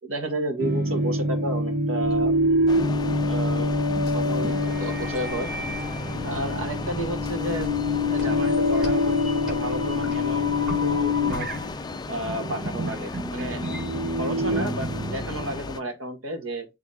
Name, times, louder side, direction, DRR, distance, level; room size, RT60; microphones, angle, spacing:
voice 1, 0.0-2.3 3.2-3.8 4.1-5.5 6.2-11.5 12.1-13.6 14.2-16.7, right 1 dB, 85° right, 1.7 m, -32 dB
sound 1, 0.6-15.7, left 1 dB, 50° right, 0.9 m, -26 dB
sound 2, 2.0-11.7, left 2 dB, 5° right, 4.2 m, -39 dB
sound 3, 2.7-15.8, left 3 dB, 20° left, 0.4 m, -36 dB
7.6 x 3.4 x 4.0 m
head